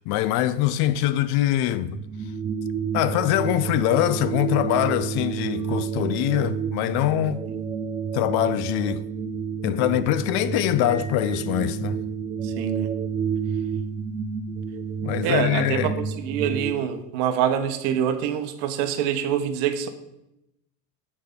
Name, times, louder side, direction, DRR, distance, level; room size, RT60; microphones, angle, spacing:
voice 1, 0.0-2.0 2.9-7.4 8.1-9.0 9.6-12.0 15.0-15.9, left 12 dB, 55° left, 0.5 m, -23 dB
sound 1, 1.9-16.7, right 6 dB, 20° right, 0.3 m, -30 dB
voice 2, 12.4-12.9 15.2-19.9, right 9 dB, 65° right, 1.0 m, -25 dB
6.6 x 4.9 x 5.1 m
supercardioid pair, 100°, 48 cm